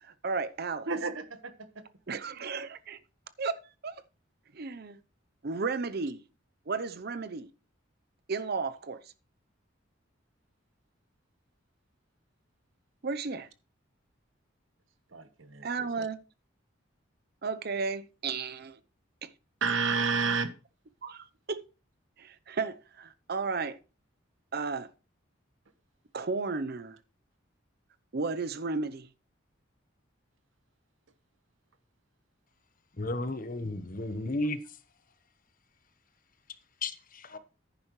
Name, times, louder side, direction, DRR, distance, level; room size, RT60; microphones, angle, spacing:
voice 1, 0.0-0.9 2.1-3.0 3.4-4.0 4.5-5.0 5.4-6.2 6.7-7.5 8.3-9.0 13.0-13.5 15.6-16.2 17.4-18.8 19.2-19.3 21.0-21.6 22.2-23.8 24.5-24.9 26.1-27.0 28.1-29.1, right 4 dB, 50° right, 0.7 m, -34 dB
voice 2, 0.9-1.4 15.1-16.1 19.6-20.5, right 5 dB, 80° right, 1.3 m, -30 dB
voice 3, 33.0-34.8 36.8-37.4, left 2 dB, 45° left, 1.1 m, -34 dB
10.5 x 9.9 x 3.1 m
head